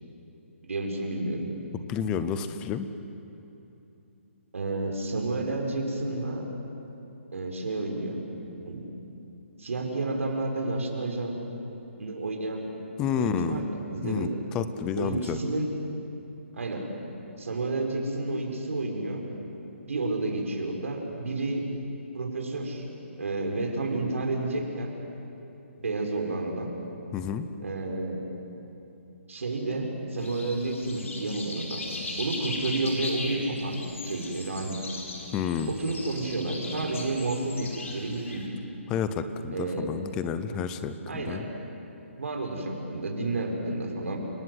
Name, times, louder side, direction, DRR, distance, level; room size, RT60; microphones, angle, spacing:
voice 1, 0.6-1.5 4.5-6.5 7.3-8.2 8.7-8.9 9.6-11.4 12.0-12.7 13.2-14.4 15.0-15.7 16.5-16.9 17.4-19.2 19.8-21.7 22.1-22.9 23.2-24.9 25.8-26.7 27.6-28.2 29.3-31.9 32.2-33.8 34.0-34.8 35.7-38.5 39.5-40.0 41.1-41.4 42.2-44.2, right 2 dB, 75° right, 1 dB, 5.5 m, -30 dB
voice 2, 1.7-2.9 13.0-13.7 14.0-14.3 14.5-15.4 27.1-27.5 35.3-35.8 38.9-41.5, left 7 dB, 10° left, 11 dB, 0.6 m, -30 dB
sound 1, 30.2-38.5, left 2 dB, 75° left, 5.0 m, -38 dB
29.5 x 19.0 x 8.1 m, 2.9 s
hypercardioid pair, 175°, 7 cm